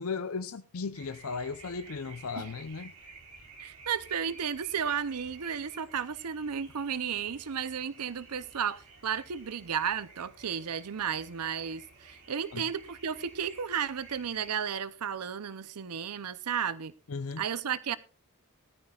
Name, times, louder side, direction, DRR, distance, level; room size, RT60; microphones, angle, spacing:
voice 1, 0.0-2.9 12.5-12.7 17.1-17.4, left 4 dB, 70° left, 0.7 m, -36 dB
sound 1, 0.9-14.6, right 3 dB, 70° right, 4.4 m, -53 dB
voice 2, 3.6-16.9 17.4-18.0, right 7 dB, 90° right, 0.6 m, -33 dB
19.5 x 13.5 x 2.4 m
head